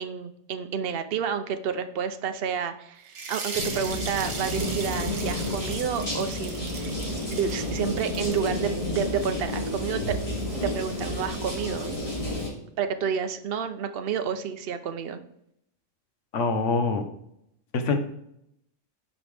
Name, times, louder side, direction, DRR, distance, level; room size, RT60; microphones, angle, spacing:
voice 1, 0.0-7.0 7.3-10.2 10.6-11.9 12.8-15.2, right 7 dB, 55° right, 8 dB, 0.8 m, -30 dB
sound 1, 3.1-8.6, right 4 dB, 90° right, 1.7 m, -38 dB
sound 2, 3.5-12.5, left 1 dB, 25° left, 2.6 m, -31 dB
voice 2, 16.3-17.0 17.7-18.0, left 4 dB, 70° left, 6 dB, 1.2 m, -24 dB
8.7 x 5.5 x 3.4 m, 0.76 s
omnidirectional pair, 1.3 m